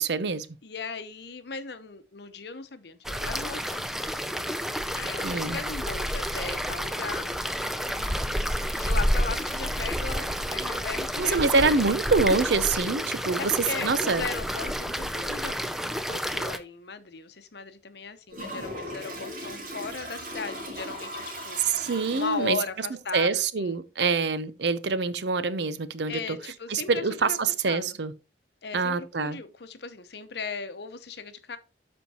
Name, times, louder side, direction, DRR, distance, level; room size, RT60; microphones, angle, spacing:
voice 1, 0.0-0.5 5.2-5.6 11.2-13.5 13.8-14.2 21.7-22.6 23.1-26.4 26.7-28.1 28.7-29.4, right 4 dB, 65° right, 0.6 m, -25 dB
voice 2, 0.6-3.9 4.9-11.8 13.2-15.5 15.8-23.8 26.1-27.4 27.6-28.0 28.6-31.6, left 4 dB, 60° left, 0.8 m, -37 dB
sound 1, 3.0-16.6, equal, ahead, 0.4 m, -30 dB
Toilet flush, 18.3-22.7, equal, 45° right, 3.0 m, -38 dB
12.5 x 4.4 x 2.9 m
head